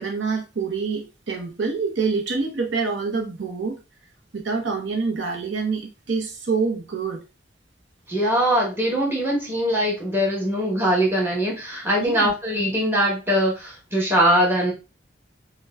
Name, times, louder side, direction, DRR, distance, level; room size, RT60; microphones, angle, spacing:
voice 1, 0.0-3.8 4.3-7.2 12.0-12.3, right 4 dB, 80° right, 0.8 m, -26 dB
voice 2, 8.1-14.7, equal, 15° right, 1.1 m, -22 dB
5.4 x 2.3 x 2.3 m
head